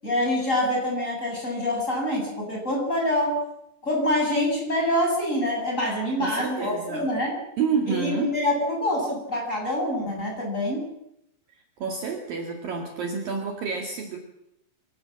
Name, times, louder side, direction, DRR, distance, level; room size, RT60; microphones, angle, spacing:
voice 1, 0.0-3.4 3.8-7.3 7.9-10.9, left 1 dB, 15° left, 0 dB, 7.6 m, -25 dB
voice 2, 6.2-7.1 7.6-8.3 11.8-14.2, right 5 dB, 55° right, 2 dB, 3.4 m, -29 dB
25.0 x 18.5 x 7.5 m, 0.81 s
omnidirectional pair, 5.3 m